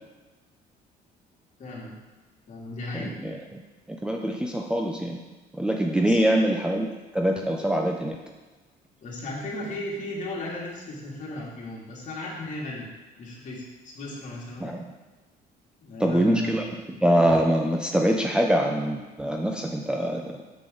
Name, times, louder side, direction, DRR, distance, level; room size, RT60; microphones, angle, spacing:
voice 1, 1.6-1.9 2.5-3.1 6.1-6.4 9.0-12.9 13.2-14.7 15.8-16.7, left 2 dB, 45° left, -5 dB, 2.7 m, -35 dB
voice 2, 2.9-3.6 3.9-5.2 5.5-6.9 7.1-8.2 14.6-14.9 16.0-20.4, right 1 dB, 5° right, 0 dB, 0.6 m, -24 dB
7.4 x 6.9 x 3.9 m, 1.2 s
cardioid pair, 110°, 17 cm